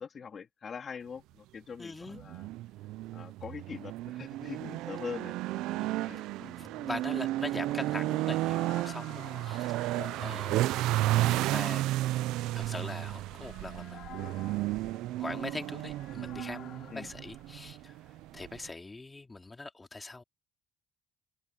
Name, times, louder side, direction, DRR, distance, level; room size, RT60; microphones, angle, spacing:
voice 1, 0.0-2.5 3.1-5.4 5.7-6.2 10.3-10.8 16.9-17.1, left 6 dB, 40° left, 2.3 m, -43 dB
voice 2, 1.8-2.2 5.8-10.8 11.2-11.9 12.5-14.5 15.2-18.0 18.3-20.2, left 3 dB, 20° left, 2.8 m, -42 dB
sound 1, 2.1-18.7, right 16 dB, 85° right, 0.4 m, -33 dB
sound 2, 4.2-18.5, left 11 dB, 65° left, 3.5 m, -54 dB
cardioid pair, 95°, 0 cm